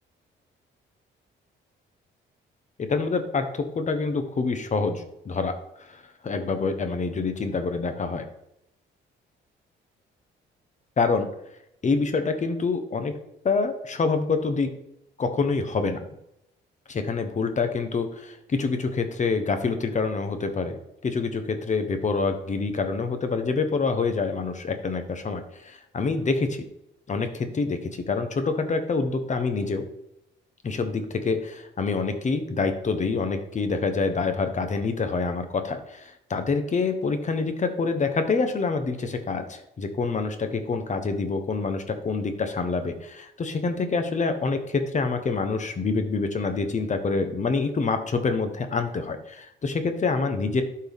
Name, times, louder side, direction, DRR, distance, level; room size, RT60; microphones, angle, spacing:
voice 1, 2.8-6.0 6.2-8.2 11.0-11.3 11.8-13.1 13.4-14.7 15.2-16.0 16.9-20.8 21.0-26.7 27.1-29.8 30.6-50.6, left 4 dB, 35° left, 7 dB, 1.2 m, -26 dB
12.0 x 4.4 x 3.6 m, 0.81 s
cardioid pair, 90°, 20 cm